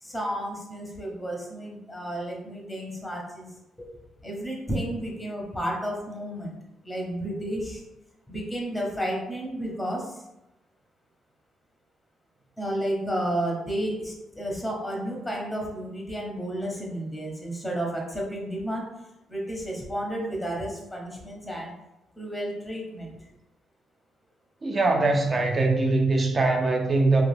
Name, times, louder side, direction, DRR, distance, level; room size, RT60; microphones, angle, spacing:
voice 1, 0.0-3.5 3.8-3.9 4.2-6.5 6.8-7.8 8.3-10.2 12.6-18.9 19.3-21.7 22.2-23.2, right 1 dB, 5° left, -1 dB, 0.7 m, -32 dB
voice 2, 24.6-27.2, right 3 dB, 35° right, 3 dB, 0.5 m, -22 dB
2.4 x 2.2 x 3.3 m, 0.92 s
cardioid pair, 90°, 0 cm